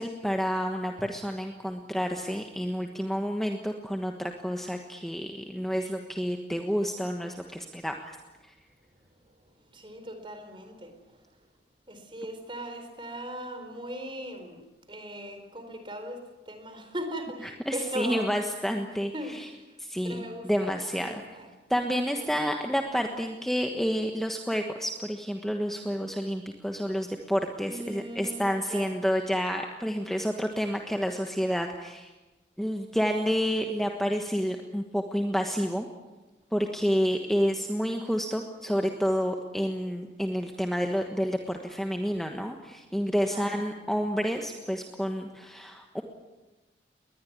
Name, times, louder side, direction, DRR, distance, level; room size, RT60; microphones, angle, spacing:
voice 1, 0.0-8.2 8.4-8.5 17.7-19.5 19.8-21.2 21.7-32.1 32.6-35.9 36.5-46.0, equal, ahead, 3 dB, 1.3 m, -29 dB
voice 2, 9.7-10.9 11.9-14.6 14.9-16.2 16.5-18.3 19.1-19.8 20.0-21.5 22.1-22.3 27.6-29.0 43.3-43.7, right 1 dB, 25° right, 6 dB, 4.2 m, -39 dB
21.0 x 20.5 x 9.7 m, 1.1 s
head